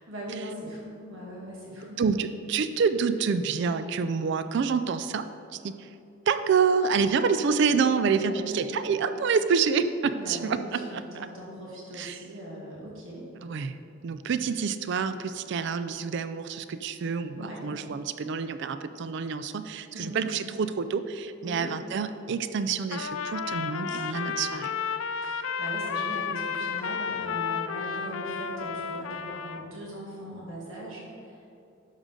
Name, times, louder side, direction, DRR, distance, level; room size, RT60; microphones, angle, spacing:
voice 1, 0.0-2.0 8.2-8.6 10.2-13.2 17.4-17.6 19.9-20.3 21.4-21.6 23.9-24.5 25.2-31.5, right 1 dB, 80° right, -4 dB, 2.1 m, -40 dB
voice 2, 2.0-5.3 5.5-5.7 6.3-10.8 11.1-11.3 12.0-12.2 13.4-13.8 14.0-24.7, right 5 dB, 60° right, 11 dB, 0.4 m, -27 dB
Trumpet, 22.9-29.7, left 6 dB, 90° left, 0.4 m, -32 dB
11.5 x 6.5 x 3.7 m, 2.6 s
head